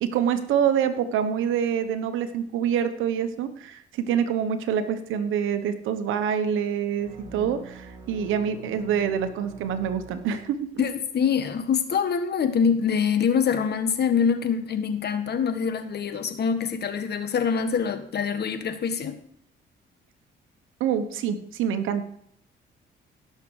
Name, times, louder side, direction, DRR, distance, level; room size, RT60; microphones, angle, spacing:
voice 1, 0.0-10.7 20.8-22.0, right 8 dB, 85° right, 10 dB, 1.2 m, -26 dB
sound 1, 7.0-10.8, right 5 dB, 25° right, 2.8 m, -44 dB
voice 2, 10.8-19.2, left 6 dB, 55° left, 9 dB, 1.4 m, -25 dB
17.0 x 6.7 x 4.8 m, 0.69 s
cardioid pair, 90°, 20 cm